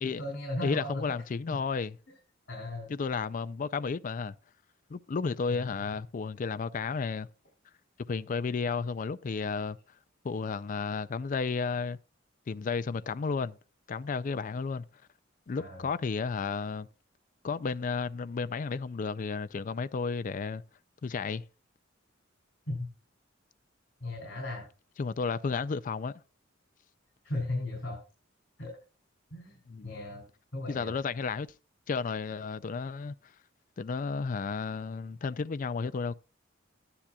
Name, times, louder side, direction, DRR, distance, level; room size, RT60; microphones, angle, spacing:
voice 1, 0.1-1.1 2.5-2.9 5.5-6.0 15.6-15.9 22.7-22.9 24.0-24.6 27.2-28.0 28.6-28.7 29.3-29.6 29.8-30.2 30.5-30.9, left 1 dB, 65° left, 3.3 m, -36 dB
voice 2, 0.6-2.0 2.9-4.3 4.9-7.3 8.0-9.8 10.2-12.0 12.5-13.6 13.9-14.8 15.5-16.9 17.4-20.6 21.0-21.4 25.0-26.1 29.7-29.9 30.7-31.5 31.9-33.1 33.8-36.1, left 5 dB, 45° left, 0.4 m, -32 dB
13.0 x 10.0 x 2.3 m
head